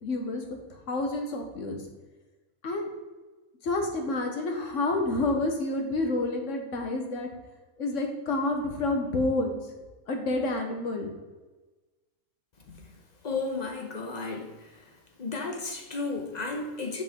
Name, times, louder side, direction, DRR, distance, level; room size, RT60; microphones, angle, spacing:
voice 1, 0.0-0.6 0.9-1.8 2.6-2.9 3.6-7.3 7.8-9.6 10.1-11.1, left 2 dB, 60° left, 3 dB, 1.4 m, -29 dB
voice 2, 13.2-14.5 15.2-17.0, left 3 dB, 35° left, 2 dB, 1.0 m, -33 dB
8.5 x 5.1 x 3.7 m, 1.2 s
omnidirectional pair, 1.5 m